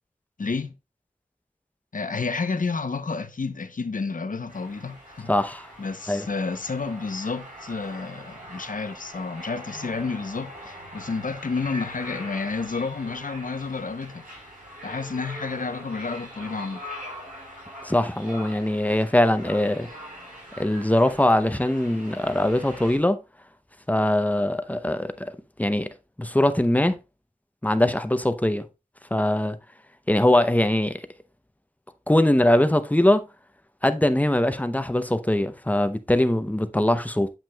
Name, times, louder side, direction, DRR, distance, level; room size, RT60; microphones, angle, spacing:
voice 1, 0.4-0.7 1.9-5.3 5.8-14.2 14.8-16.8, left 4 dB, 70° left, 0.8 m, -30 dB
sound 1, 4.5-23.0, equal, 75° right, 4.5 m, -42 dB
voice 2, 5.3-5.7 6.1-6.2 17.8-19.9 20.6-23.2 23.9-25.1 25.6-25.9 26.2-27.0 27.6-28.7 29.1-29.6 30.1-31.0 32.1-33.3 33.8-37.3, left 1 dB, 10° left, 0.7 m, -22 dB
9.0 x 7.4 x 2.3 m
wide cardioid pair, 65°, 14 cm